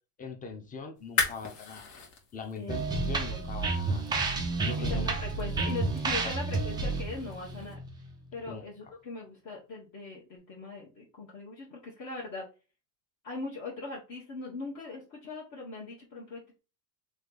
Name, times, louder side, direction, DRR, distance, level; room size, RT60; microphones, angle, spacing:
voice 1, 0.2-1.9 2.3-4.0 4.6-5.0 6.2-6.3 8.5-8.6, left 5 dB, 20° left, 4 dB, 0.8 m, -41 dB
sound 1, 1.0-7.7, left 5 dB, 70° left, 1.7 m, -39 dB
sound 2, 2.7-8.3, right 3 dB, 10° right, 0.3 m, -31 dB
voice 2, 3.0-3.4 4.6-7.8 8.3-12.4 13.2-16.6, left 3 dB, 40° left, -4 dB, 1.3 m, -40 dB
3.3 x 2.9 x 3.9 m, 0.33 s
supercardioid pair, 130°, 47 cm